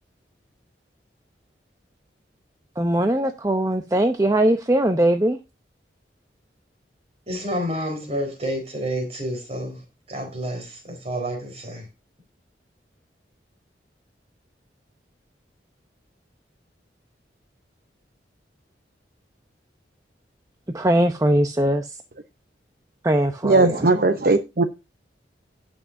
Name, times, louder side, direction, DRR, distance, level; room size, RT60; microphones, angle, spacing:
voice 1, 2.8-5.4 20.7-22.0 23.0-23.9, right 1 dB, 20° right, 0.7 m, -20 dB
voice 2, 7.3-9.8 10.1-11.9, equal, 35° right, 4.3 m, -29 dB
voice 3, 23.4-24.6, right 3 dB, 55° right, 0.8 m, -18 dB
17.5 x 6.3 x 2.6 m
head